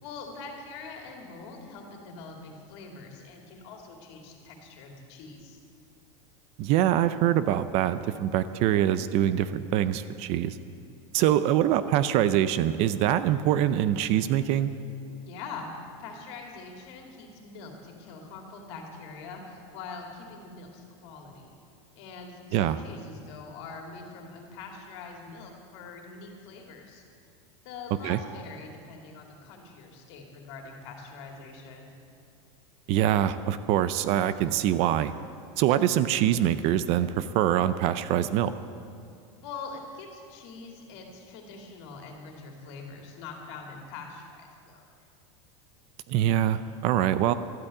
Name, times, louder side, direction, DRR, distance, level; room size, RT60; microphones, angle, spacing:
voice 1, 0.0-5.6 15.2-15.7 16.0-21.6 22.0-27.0 27.6-31.9 39.4-44.9, left 4 dB, 60° left, 2 dB, 2.6 m, -43 dB
voice 2, 6.6-10.6 11.1-14.7 22.5-22.8 28.0-28.2 32.9-35.1 35.6-38.5 46.1-47.3, right 11 dB, 45° right, 13 dB, 0.5 m, -24 dB
12.5 x 8.5 x 8.9 m, 2.5 s
supercardioid pair, 155°, 15 cm